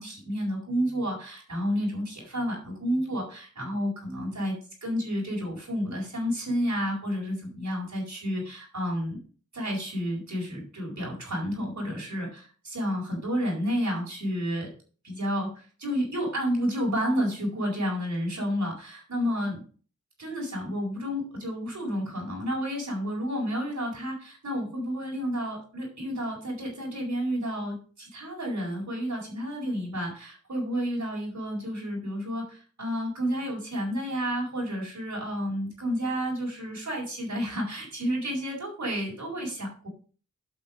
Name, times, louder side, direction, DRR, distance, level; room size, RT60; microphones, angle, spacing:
voice 1, 0.0-4.5 4.8-9.2 9.5-14.7 15.0-19.6 20.2-39.9, equal, 65° right, -1 dB, 4.6 m, -30 dB
8.9 x 5.8 x 5.0 m, 0.40 s
cardioid pair, 50°, 31 cm